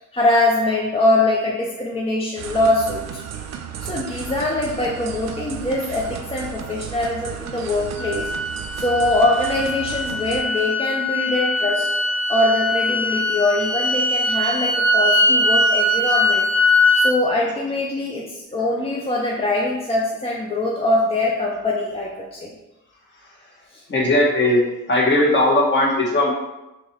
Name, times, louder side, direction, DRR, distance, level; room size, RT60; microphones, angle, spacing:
voice 1, 0.1-3.2 3.8-8.3 8.7-11.9 12.3-16.5 16.9-22.5 23.7-23.8, left 2 dB, 20° left, -3 dB, 0.5 m, -22 dB
sound 1, 2.4-10.4, right 8 dB, 60° right, 0.5 m, -34 dB
sound 2, 8.0-17.1, left 1 dB, 65° left, 0.6 m, -21 dB
voice 2, 23.9-24.6 24.9-26.3, left 1 dB, 40° left, -3 dB, 1.3 m, -17 dB
2.9 x 2.9 x 4.3 m, 0.99 s
cardioid pair, 90°, 30 cm